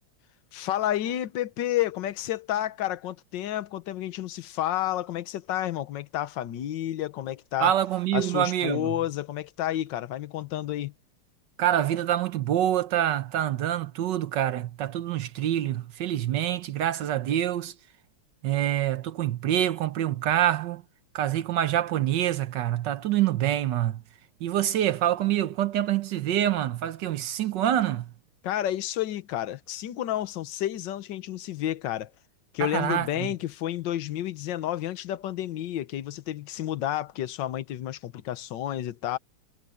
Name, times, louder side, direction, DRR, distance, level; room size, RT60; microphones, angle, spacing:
voice 1, 0.5-7.7 8.1-10.9 28.4-32.1 32.5-39.2, left 12 dB, 60° left, 1.5 m, -30 dB
voice 2, 7.6-8.9 11.6-17.7 18.4-20.8 21.1-24.0 24.4-28.1 32.6-33.3, right 12 dB, 65° right, 1.2 m, -26 dB
omnidirectional pair, 2.4 m